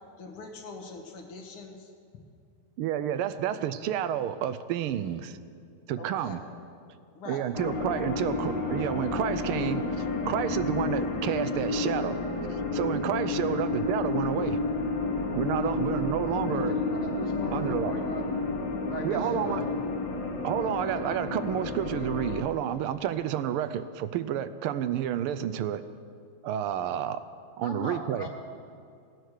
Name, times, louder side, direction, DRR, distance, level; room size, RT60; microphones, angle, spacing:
voice 1, 0.2-1.9 6.0-6.4 7.1-7.5, left 3 dB, 80° left, 2 dB, 2.3 m, -43 dB
voice 2, 2.8-5.4 5.9-6.4 7.3-12.2 12.5-14.6 15.3-16.7 17.5-18.0 19.0-19.7 20.4-25.8 26.4-27.2 27.6-28.3, right 10 dB, 80° right, 13 dB, 1.5 m, -30 dB
sound 1, 7.5-22.4, left 3 dB, 65° left, 2.1 m, -31 dB
voice 3, 16.5-18.2 18.9-19.7 27.6-28.3, left 2 dB, 35° left, 2 dB, 1.6 m, -38 dB
17.0 x 9.2 x 6.5 m, 2.3 s
omnidirectional pair, 2.4 m